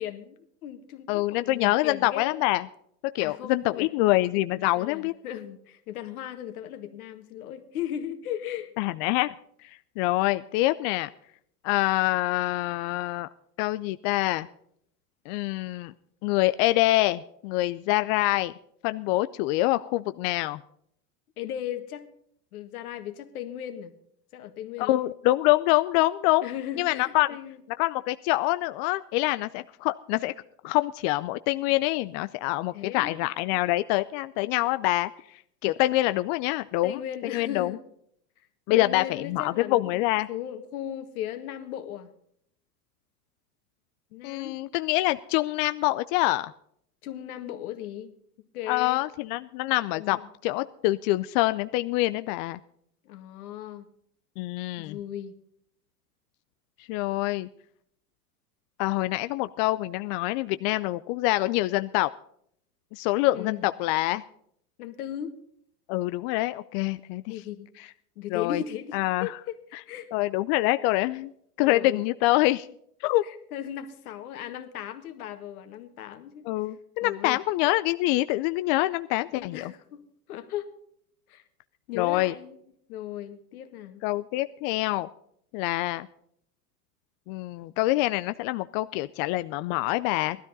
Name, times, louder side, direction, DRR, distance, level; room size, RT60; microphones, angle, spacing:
voice 1, 0.0-2.4 3.2-3.9 4.6-8.7 21.4-22.1 22.5-23.9 24.3-25.1 26.4-27.6 32.7-33.2 36.8-37.8 38.8-42.1 44.1-44.6 47.0-48.1 48.5-49.0 49.9-50.3 53.1-53.9 54.8-55.3 63.3-63.7 64.8-65.3 67.3-67.7 68.2-70.1 71.6-72.1 73.2-76.5 77.0-77.4 79.3-80.0 80.3-80.7 81.3-81.4 81.9-82.6 82.9-84.0, left 10 dB, 65° left, 8 dB, 1.9 m, -37 dB
voice 2, 1.1-2.6 3.1-5.1 8.8-9.3 10.0-11.1 11.6-13.3 13.6-14.5 15.3-15.9 16.2-18.5 18.8-20.6 24.8-26.5 26.8-27.3 27.8-30.3 30.6-35.1 35.6-37.7 38.7-40.3 44.2-46.5 48.7-52.6 54.4-55.0 56.9-57.5 58.8-62.1 62.9-64.2 65.9-67.2 67.8-67.9 68.3-68.6 68.9-69.3 70.1-71.3 71.6-72.7 73.0-73.2 76.5-79.7 81.9-82.3 84.0-85.1 85.5-86.1 87.3-90.4, left 18 dB, 35° left, 12 dB, 0.4 m, -25 dB
17.5 x 13.0 x 4.0 m, 0.69 s
hypercardioid pair, 100°, 46 cm